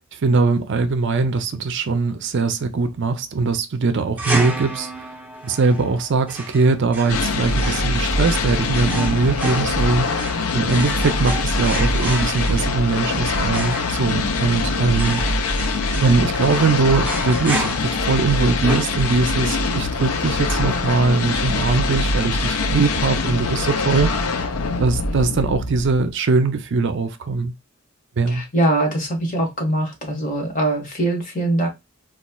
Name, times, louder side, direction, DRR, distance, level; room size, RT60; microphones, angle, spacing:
voice 1, 0.1-5.1 5.4-15.6 16.0-24.3 24.8-27.5 28.2-28.4, right 4 dB, 55° right, 0.5 m, -21 dB
sound 1, 4.2-19.5, right 1 dB, 10° right, 0.8 m, -32 dB
sound 2, 7.1-26.1, left 3 dB, 85° left, 0.5 m, -23 dB
voice 2, 28.3-31.7, right 1 dB, 35° left, 1.4 m, -22 dB
4.2 x 2.3 x 2.2 m
head